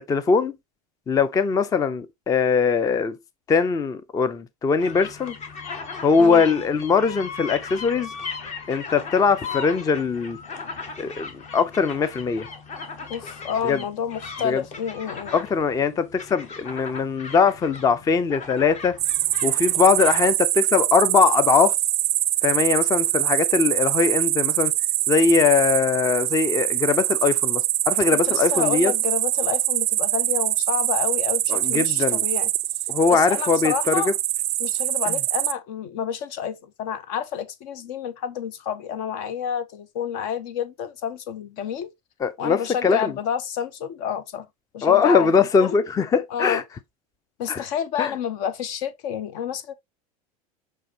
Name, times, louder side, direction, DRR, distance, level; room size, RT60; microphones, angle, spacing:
voice 1, 0.1-0.5 1.1-3.2 3.5-5.4 6.0-8.1 8.7-10.4 11.0-12.5 13.6-13.8 14.4-14.6 15.3-18.9 19.4-21.7 22.4-24.7 25.1-28.9 31.5-32.2 32.9-34.1 42.2-43.1 44.8-46.6 47.5-47.6 48.0-48.1, left 5 dB, 20° left, 0.4 m, -21 dB
sound 1, 4.8-20.3, left 5 dB, 40° left, 1.0 m, -38 dB
voice 2, 13.1-15.3 28.2-32.5 33.1-34.1 34.6-41.9 42.4-44.5 44.7-45.8 46.3-46.6 47.4-49.7, left 8 dB, 60° left, 0.8 m, -29 dB
sound 2, 19.0-35.5, right 15 dB, 75° right, 0.4 m, -24 dB
6.2 x 2.7 x 2.8 m
hypercardioid pair, 95°, 19 cm